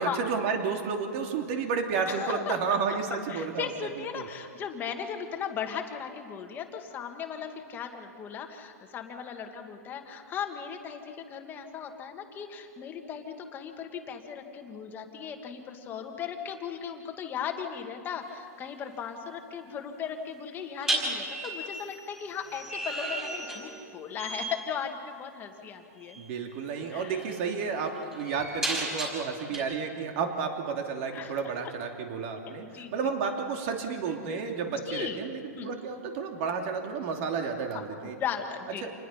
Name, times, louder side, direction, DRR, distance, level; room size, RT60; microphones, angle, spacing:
voice 1, 0.0-3.7 4.1-4.3 26.2-32.6 32.9-38.1 38.8-38.9, right 5 dB, 45° right, 3 dB, 2.8 m, -31 dB
voice 2, 2.1-3.0 3.3-26.2 26.9-27.2 27.9-28.2 29.5-29.9 31.1-31.4 32.5-33.0 34.4-34.5 34.9-35.2 35.6-35.7 37.7-37.8 38.2-38.9, left 7 dB, 20° left, 5 dB, 1.8 m, -37 dB
sound 1, 18.2-18.5 20.8-23.9 24.2-24.6 26.1-26.3 26.7-29.6, right 1 dB, 5° right, 4.9 m, -34 dB
27.5 x 20.0 x 5.7 m, 2.6 s
hypercardioid pair, 150°, 9 cm